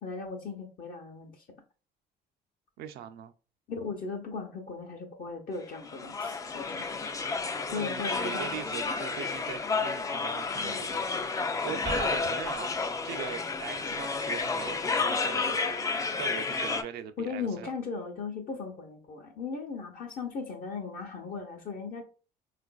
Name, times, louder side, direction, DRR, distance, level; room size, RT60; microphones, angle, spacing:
voice 1, 0.0-1.4 3.7-6.9 7.7-8.5 17.2-22.0, left 4 dB, 55° left, 0.8 m, -37 dB
voice 2, 2.8-3.3 7.7-15.8 16.2-17.7, right 9 dB, 70° right, 0.4 m, -41 dB
sound 1, 5.9-16.8, left 4 dB, 20° left, 0.3 m, -31 dB
3.8 x 2.5 x 2.2 m
cardioid pair, 110°, 17 cm